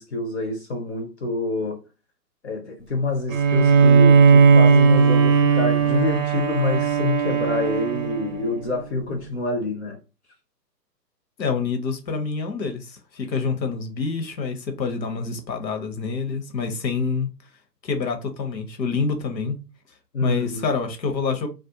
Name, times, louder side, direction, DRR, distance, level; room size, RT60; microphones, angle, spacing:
voice 1, 0.0-1.8 2.4-10.0 20.1-20.7, left 3 dB, 45° left, 0.5 m, -27 dB
Bowed string instrument, 3.3-8.8, right 5 dB, 50° right, 0.6 m, -17 dB
voice 2, 11.4-17.3 17.8-19.6 20.2-21.5, left 5 dB, 85° left, 0.9 m, -27 dB
2.4 x 2.1 x 2.7 m
hypercardioid pair, 135°, 50 cm